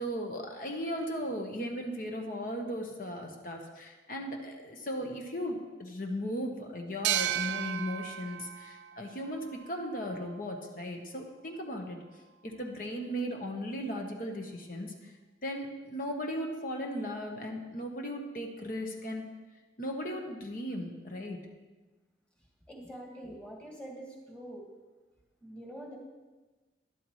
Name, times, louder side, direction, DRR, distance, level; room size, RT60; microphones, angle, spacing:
voice 1, 0.0-12.0 12.4-15.1 15.4-19.3 19.8-21.4, equal, 50° left, 2 dB, 1.2 m, -37 dB
sound 1, 7.0-10.4, right 11 dB, 80° right, 0.4 m, -35 dB
voice 2, 22.7-24.6 25.4-26.0, right 1 dB, 5° left, -2 dB, 1.9 m, -45 dB
12.5 x 11.0 x 3.2 m, 1.2 s
head